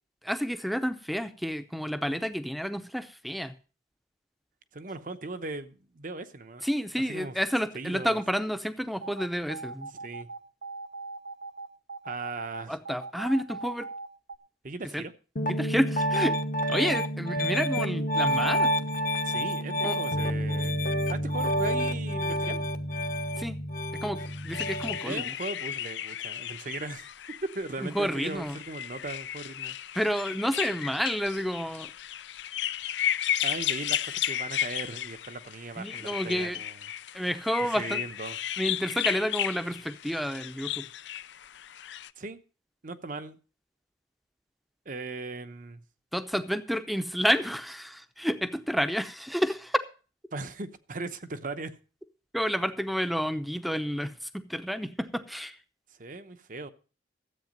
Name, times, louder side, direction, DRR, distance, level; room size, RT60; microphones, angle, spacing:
voice 1, 0.2-3.5 6.6-9.9 12.7-13.9 14.9-15.0 15.4-16.4 16.7-18.9 19.8-20.0 23.4-23.6 23.9-25.3 27.8-28.6 29.9-31.9 35.8-36.6 37.1-38.0 38.6-40.9 46.1-49.8 52.3-55.6, equal, ahead, 0.7 m, -30 dB
voice 2, 4.7-6.6 7.1-7.3 7.7-8.2 9.9-10.3 12.0-12.8 14.6-15.1 19.2-20.7 21.1-22.7 25.0-29.8 33.4-36.8 37.6-38.4 42.2-42.4 42.8-43.4 44.9-45.8 50.3-51.7 56.0-56.7, right 3 dB, 45° right, 0.8 m, -38 dB
sound 1, 9.0-14.4, right 3 dB, 80° right, 0.8 m, -40 dB
Piano, 15.4-25.1, equal, 45° left, 1.0 m, -28 dB
sound 2, 24.2-42.1, left 11 dB, 75° left, 0.5 m, -34 dB
13.5 x 8.3 x 5.2 m
head